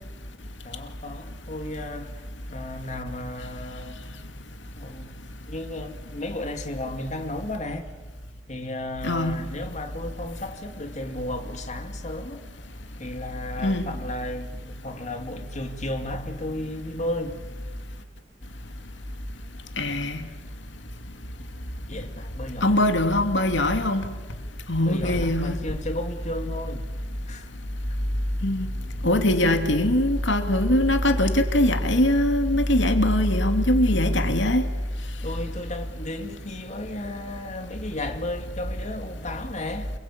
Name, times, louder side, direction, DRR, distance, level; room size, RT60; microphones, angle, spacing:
voice 1, 0.6-2.1 2.5-4.0 4.8-5.1 5.5-7.9 8.5-12.4 13.0-17.4 21.9-23.0 24.8-26.8 27.3-27.5 29.3-29.6 35.2-39.9, left 1 dB, 40° left, 2.6 m, -34 dB
voice 2, 9.0-9.4 13.6-13.9 19.8-20.2 22.6-24.1 24.7-25.6 28.4-28.7 29.0-34.6, left 1 dB, 85° left, 2.5 m, -21 dB
29.0 x 22.0 x 8.8 m
head